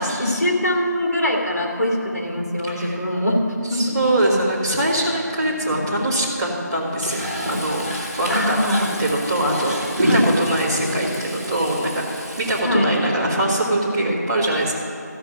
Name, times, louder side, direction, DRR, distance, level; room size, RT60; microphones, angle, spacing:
voice 1, 0.0-3.4 3.7-4.0 8.3-8.9 10.1-10.3 12.6-12.9, left 1 dB, 55° left, -1 dB, 2.5 m, -22 dB
voice 2, 2.7-3.0 3.7-8.6 9.0-12.0 12.4-14.7, right 1 dB, 10° right, -9 dB, 1.3 m, -23 dB
sound 1, 4.3-4.5 4.8-7.6 8.4-9.6 9.9-12.5 12.8-13.5 13.9-14.1, equal, 40° right, 3.5 m, -28 dB
Frying (food), 7.0-12.6, equal, 10° left, 1.6 m, -33 dB
14.0 x 5.7 x 9.3 m, 2.7 s
figure-of-eight pair, 170°, 10 cm